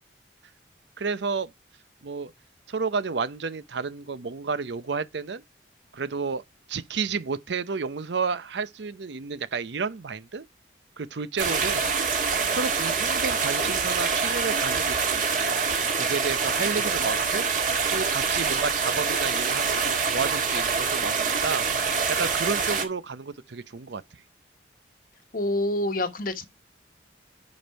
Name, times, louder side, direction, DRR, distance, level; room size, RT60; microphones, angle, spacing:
voice 1, 1.0-1.5 2.0-2.3 2.7-5.4 5.9-6.4 6.7-10.5 11.0-11.8 12.1-15.6 15.9-17.5 17.9-24.0, right 5 dB, 70° right, 0.6 m, -31 dB
sound 1, 11.4-22.9, right 5 dB, 45° right, 1.9 m, -25 dB
voice 2, 25.3-26.5, left 1 dB, 50° left, 1.3 m, -27 dB
9.5 x 5.2 x 4.4 m
head